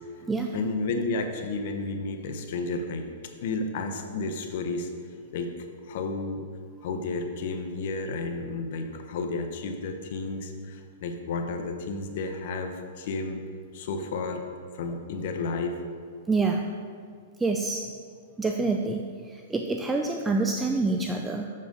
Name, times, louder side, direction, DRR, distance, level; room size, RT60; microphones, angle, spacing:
voice 1, 0.5-3.1 3.4-4.9 5.3-5.5 5.9-6.4 6.8-13.4 13.7-14.4 14.7-15.8, left 3 dB, 60° left, 6 dB, 0.8 m, -32 dB
voice 2, 16.3-16.7 17.4-17.9 18.4-21.5, right 3 dB, 10° right, 3 dB, 0.4 m, -27 dB
7.5 x 6.8 x 3.9 m, 2.1 s
hypercardioid pair, 145°, 0 cm